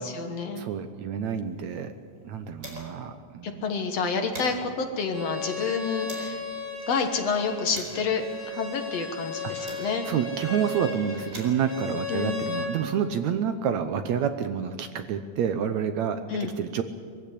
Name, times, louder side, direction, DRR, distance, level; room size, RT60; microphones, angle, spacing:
voice 1, 0.0-0.6 3.4-6.4 6.9-10.1 12.1-12.4 16.3-16.5, left 5 dB, 55° left, 6 dB, 2.3 m, -29 dB
voice 2, 0.6-1.9 2.2-3.6 9.6-16.2 16.6-16.8, right 8 dB, 70° right, 9 dB, 2.0 m, -28 dB
sound 1, 1.3-3.1 3.4-3.5 3.9-6.4 7.0-10.3 11.0-13.2, right 1 dB, 25° right, 5.0 m, -47 dB
Bowed string instrument, 5.1-12.7, left 2 dB, 5° right, 4.1 m, -35 dB
22.5 x 15.5 x 10.0 m, 2.1 s
omnidirectional pair, 3.8 m